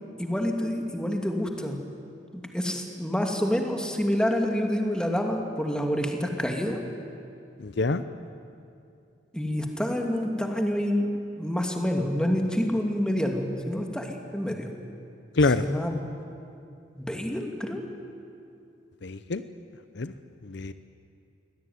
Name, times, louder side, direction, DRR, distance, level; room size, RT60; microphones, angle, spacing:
voice 1, 0.2-1.8 2.5-6.8 9.3-11.1 11.4-14.7 15.6-16.0 17.0-17.8, equal, 5° left, 2 dB, 2.4 m, -27 dB
voice 2, 7.6-8.0 15.4-15.6 19.0-19.4 20.0-20.1 20.4-20.7, left 3 dB, 70° left, 12 dB, 0.7 m, -25 dB
24.0 x 17.0 x 9.5 m, 2.5 s
head